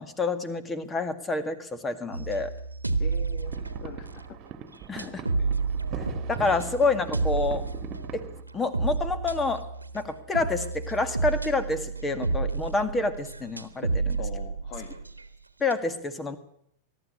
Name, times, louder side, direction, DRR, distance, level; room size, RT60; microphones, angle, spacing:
voice 1, 0.0-2.5 4.9-5.2 6.3-7.6 8.1-8.2 8.5-9.6 9.9-14.2 15.6-16.4, left 3 dB, 15° left, 11 dB, 2.0 m, -28 dB
sound 1, 2.1-4.4 5.0-15.3 15.7-15.8, right 4 dB, 80° right, 1.4 m, -31 dB
voice 2, 3.0-4.4 5.0-5.5 14.2-15.1, left 8 dB, 40° left, 10 dB, 1.5 m, -43 dB
sound 2, 3.4-8.4, right 8 dB, 35° right, 1.9 m, -41 dB
22.0 x 12.0 x 10.0 m, 0.72 s
figure-of-eight pair, 90°, 0 cm